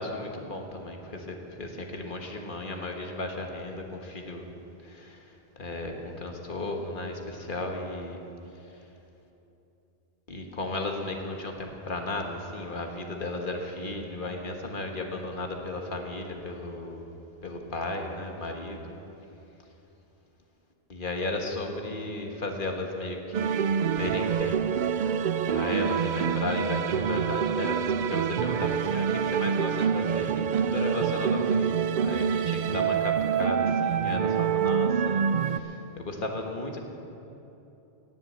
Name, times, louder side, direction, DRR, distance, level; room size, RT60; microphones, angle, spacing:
voice 1, 0.0-4.5 4.8-8.2 8.5-8.9 10.3-17.0 17.4-19.0 20.9-23.5 24.0-24.8 25.5-36.8, left 2 dB, 55° left, 3 dB, 1.6 m, -35 dB
sound 1, 23.3-35.6, right 7 dB, 60° right, 0.6 m, -26 dB
18.0 x 7.5 x 7.8 m, 2.9 s
omnidirectional pair, 1.0 m